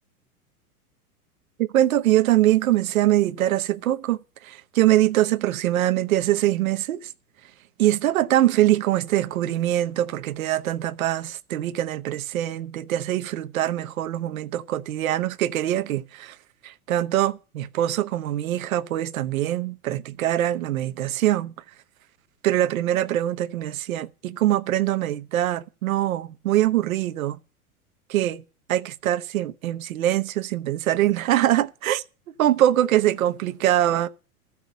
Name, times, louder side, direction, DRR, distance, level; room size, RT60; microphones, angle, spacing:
voice 1, 1.6-7.1 7.8-16.4 16.6-21.5 22.4-27.4 28.1-28.4 28.7-32.0 32.4-34.1, right 13 dB, 65° right, 1.0 m, -23 dB
14.5 x 6.0 x 8.4 m
hypercardioid pair, 105°, 45 cm